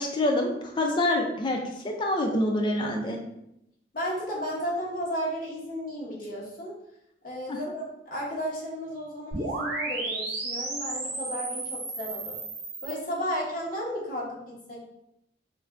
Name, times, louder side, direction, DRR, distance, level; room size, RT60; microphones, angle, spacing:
voice 1, 0.0-1.6 1.8-3.2 7.5-7.6, left 1 dB, 25° left, 2 dB, 0.4 m, -26 dB
voice 2, 3.9-6.7 7.2-12.3 12.8-14.9, equal, 45° left, -4 dB, 0.8 m, -33 dB
sound 1, 9.3-12.9, right 2 dB, 60° right, 0.6 m, -33 dB
2.5 x 2.2 x 3.3 m, 0.82 s
head